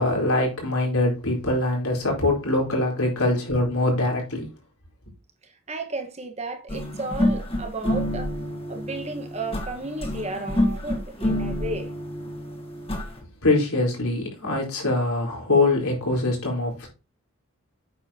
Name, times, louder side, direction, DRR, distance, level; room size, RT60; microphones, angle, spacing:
voice 1, 0.0-4.5 13.4-16.9, left 2 dB, 80° left, 4.1 m, -23 dB
voice 2, 5.4-8.4 8.7-11.9, right 2 dB, 30° right, 1.3 m, -33 dB
sound 1, 6.7-13.2, left 1 dB, 25° left, 1.7 m, -28 dB
8.6 x 6.9 x 2.9 m
head